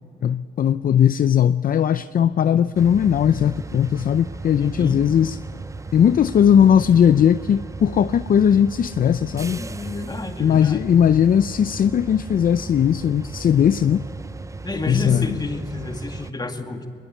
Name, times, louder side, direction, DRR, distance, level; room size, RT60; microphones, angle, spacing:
voice 1, 0.2-5.4 5.9-9.6 10.4-14.0 14.9-15.3, left 9 dB, 45° left, 0.5 m, -18 dB
sound 1, 2.7-16.3, right 3 dB, 15° right, 0.5 m, -36 dB
voice 2, 4.6-5.1 9.6-11.0 14.6-16.9, left 2 dB, 20° left, 2.2 m, -30 dB
22.0 x 21.0 x 8.3 m
cardioid pair, 90°, 20 cm